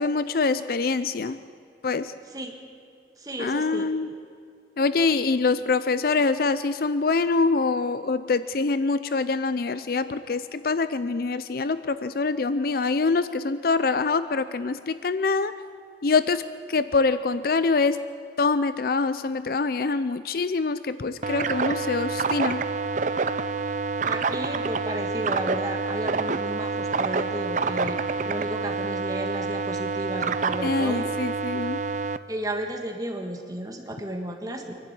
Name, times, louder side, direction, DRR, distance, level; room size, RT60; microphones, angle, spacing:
voice 1, 0.0-1.4 1.8-2.1 3.4-4.1 4.8-15.5 16.0-16.4 16.7-18.0 18.4-22.6 30.6-31.8, left 4 dB, 55° left, 13 dB, 0.5 m, -25 dB
voice 2, 3.2-3.9 24.0-28.0 28.2-31.1 32.3-34.7, right 1 dB, 20° right, 3 dB, 1.5 m, -33 dB
sound 1, 21.2-32.2, right 4 dB, 45° right, 0.6 m, -27 dB
24.5 x 12.0 x 9.6 m, 2.3 s
head